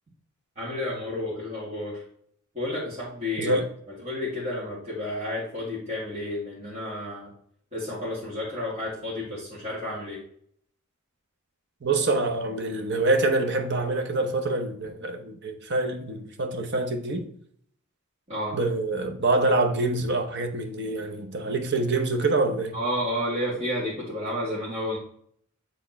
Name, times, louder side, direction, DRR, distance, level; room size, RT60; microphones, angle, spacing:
voice 1, 0.6-2.0 2.5-3.6 4.0-7.3 7.7-10.2 18.3-18.6 22.7-25.0, left 1 dB, 30° right, 2.1 m, -31 dB
voice 2, 11.8-17.3 18.5-22.8, right 2 dB, 55° right, 0.9 m, -26 dB
7.5 x 3.6 x 4.2 m
head